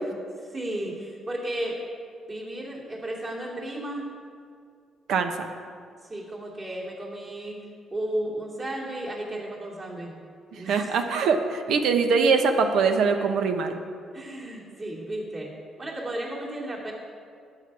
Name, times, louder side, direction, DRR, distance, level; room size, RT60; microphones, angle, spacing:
voice 1, 0.4-1.8 2.3-4.0 6.0-7.6 7.9-10.2 10.5-10.9 14.1-15.5 15.8-16.9, right 1 dB, 35° right, -5 dB, 2.7 m, -34 dB
voice 2, 5.1-5.5 10.5-13.8, right 5 dB, 75° right, 6 dB, 1.0 m, -23 dB
12.5 x 8.8 x 4.8 m, 2.2 s
cardioid pair, 90°, 0 cm